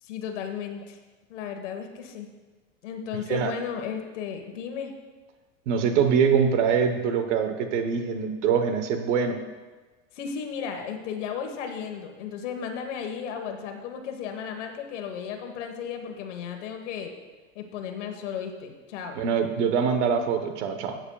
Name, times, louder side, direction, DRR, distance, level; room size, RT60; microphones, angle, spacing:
voice 1, 0.0-1.0 1.3-2.3 2.8-4.9 10.1-17.1 17.5-19.2, left 7 dB, 80° left, 5 dB, 1.5 m, -34 dB
voice 2, 5.7-9.4 19.1-21.0, right 6 dB, 75° right, 7 dB, 1.1 m, -24 dB
15.5 x 8.0 x 2.4 m, 1.3 s
supercardioid pair, 160°, 36 cm